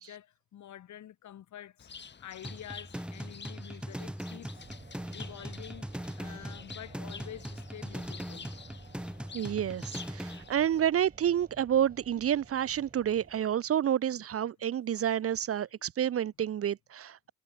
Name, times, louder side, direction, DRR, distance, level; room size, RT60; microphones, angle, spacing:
voice 1, 0.0-4.7 5.1-5.9 6.2-8.5 14.1-14.2, left 11 dB, 70° left, 7.8 m, -48 dB
Bird, 1.8-10.8, left 6 dB, 35° left, 2.2 m, -50 dB
sound 1, 2.4-10.4, equal, 5° right, 2.8 m, -41 dB
sound 2, 4.5-13.7, right 4 dB, 30° right, 6.5 m, -54 dB
voice 2, 9.3-17.3, right 10 dB, 50° right, 0.8 m, -29 dB
cardioid pair, 90°, 30 cm